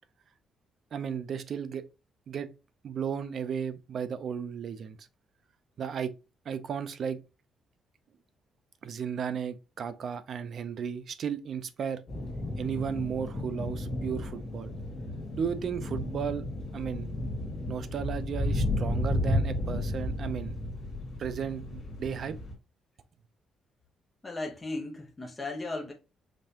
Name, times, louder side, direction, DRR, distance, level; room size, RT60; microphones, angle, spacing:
voice 1, 0.9-1.8 2.3-2.5 2.8-5.1 5.8-6.1 6.5-7.2 8.8-12.0 12.6-14.7 15.3-16.5 16.7-17.1 17.7-20.6 21.2-22.4, right 7 dB, 45° right, 0.5 m, -34 dB
sound 1, 12.1-22.5, left 1 dB, 50° left, 2.2 m, -33 dB
voice 2, 24.2-25.9, left 2 dB, 15° left, 0.9 m, -36 dB
5.2 x 3.4 x 2.8 m
cardioid pair, 170°, 0 cm